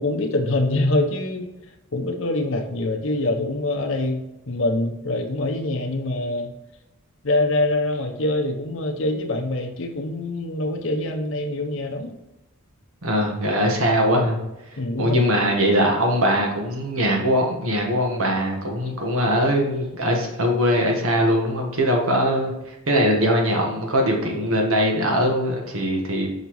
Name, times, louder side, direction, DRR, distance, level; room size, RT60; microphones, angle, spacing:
voice 1, 0.0-1.5 1.9-6.5 7.2-12.2 14.8-15.3, left 2 dB, 60° left, 4 dB, 0.7 m, -24 dB
voice 2, 13.0-14.4 15.0-26.3, equal, 70° right, 1 dB, 1.3 m, -21 dB
5.9 x 5.3 x 3.1 m, 0.97 s
head